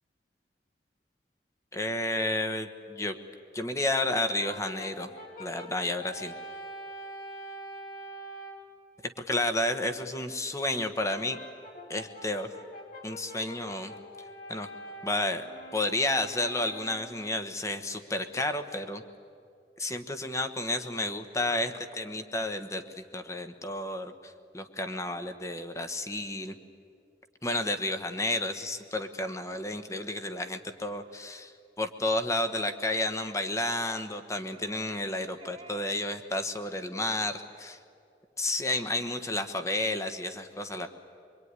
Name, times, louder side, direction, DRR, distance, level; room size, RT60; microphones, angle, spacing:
voice 1, 1.7-3.1 3.5-5.1 5.4-6.3 9.3-11.4 11.9-12.5 13.0-13.9 14.5-14.7 15.0-15.5 15.7-19.0 19.8-26.5 27.4-31.5 31.8-37.8 38.4-40.9, left 2 dB, 15° left, 8 dB, 1.3 m, -31 dB
Brass instrument, 4.1-8.7 11.1-17.4, equal, 55° left, 3.6 m, -44 dB
sound 1, 32.4-32.9 33.2-33.4 33.8-34.2 34.5-35.1 35.4-36.0 36.3-36.4, right 3 dB, 35° right, 1.7 m, -51 dB
24.0 x 23.5 x 9.7 m, 2.4 s
head